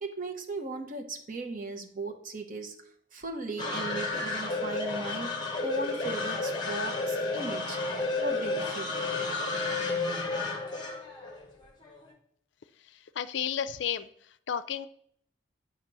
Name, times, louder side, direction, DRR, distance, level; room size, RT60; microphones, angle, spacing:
voice 1, 0.0-2.8 3.1-7.8 8.2-8.9, right 2 dB, 45° right, 3 dB, 0.8 m, -37 dB
sound 1, 3.6-12.0, left 3 dB, 20° left, 1.1 m, -32 dB
voice 2, 13.2-14.1 14.5-14.9, left 8 dB, 65° left, 11 dB, 0.4 m, -31 dB
8.4 x 2.9 x 6.0 m, 0.66 s
head